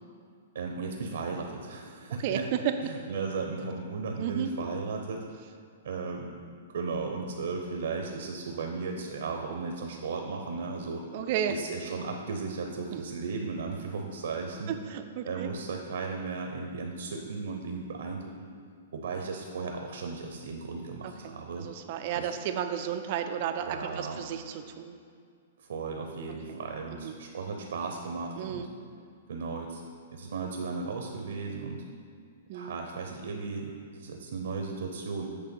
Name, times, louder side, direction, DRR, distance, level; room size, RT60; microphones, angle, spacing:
voice 1, 0.5-2.5 2.8-5.2 5.8-6.4 6.7-11.0 11.5-14.8 15.2-18.5 18.9-21.7 22.2-22.3 23.6-24.2 25.6-28.7 29.3-29.8 30.1-31.8 32.5-35.3, right 4 dB, 75° right, 2 dB, 0.7 m, -35 dB
voice 2, 2.2-2.9 4.2-4.5 11.1-11.6 12.9-13.0 14.7-15.5 21.0-25.0 26.5-26.6 27.0-27.2 28.4-28.7 32.5-32.8, right 9 dB, 40° right, 7 dB, 0.4 m, -33 dB
8.2 x 3.3 x 5.4 m, 2.2 s
hypercardioid pair, 160°, 0 cm